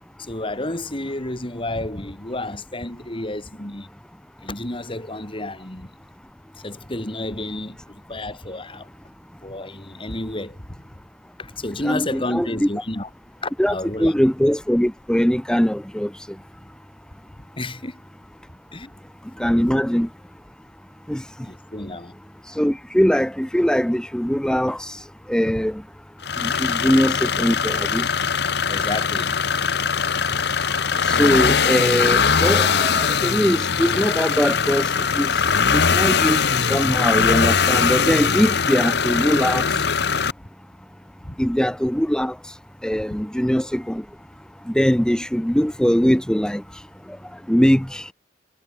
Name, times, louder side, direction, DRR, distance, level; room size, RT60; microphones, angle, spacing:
voice 1, 0.2-3.9 4.4-5.9 6.6-8.9 9.4-10.8 11.4-13.1 13.4-14.1 17.6-18.0 18.7-18.9 21.4-22.1 28.7-29.5 41.2-41.4, left 1 dB, 30° left, 3.2 m, -30 dB
voice 2, 11.8-12.7 13.6-16.1 19.4-20.1 21.1-21.2 22.6-24.8 25.3-25.8 26.4-28.0 31.2-34.9 35.2-35.3 35.7-39.6 41.4-42.3 42.8-44.0 44.7-46.6 47.5-48.0, equal, 5° left, 0.8 m, -21 dB
sound 1, 26.2-40.3, left 6 dB, 65° left, 1.1 m, -21 dB
head